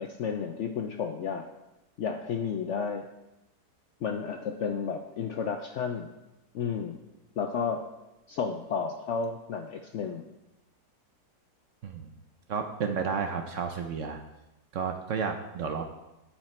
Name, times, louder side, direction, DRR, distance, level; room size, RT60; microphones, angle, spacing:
voice 1, 0.0-1.4 2.0-3.1 4.0-6.1 6.5-7.0 7.4-7.8 8.3-10.3, left 6 dB, 70° left, 5 dB, 0.7 m, -32 dB
voice 2, 12.5-14.2 14.7-15.8, right 6 dB, 60° right, 5 dB, 0.9 m, -31 dB
9.3 x 6.4 x 4.3 m, 0.95 s
omnidirectional pair, 1.7 m